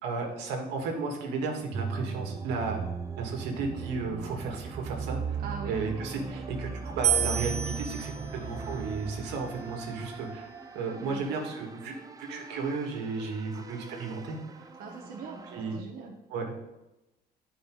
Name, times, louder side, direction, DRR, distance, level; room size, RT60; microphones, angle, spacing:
voice 1, 0.0-2.8 3.2-5.4 5.7-10.5 10.8-14.7 15.5-15.8 16.3-16.5, right 4 dB, 90° right, 2 dB, 1.8 m, -34 dB
sound 1, 1.7-15.8, right 5 dB, 20° right, 0.6 m, -39 dB
voice 2, 5.4-5.8 11.0-11.3 14.8-15.4 15.7-16.2, right 5 dB, 60° right, 0 dB, 1.1 m, -41 dB
sound 2, 7.0-10.3, right 9 dB, 40° right, 1.2 m, -32 dB
9.1 x 5.0 x 4.6 m, 0.96 s
cardioid pair, 110°, 17 cm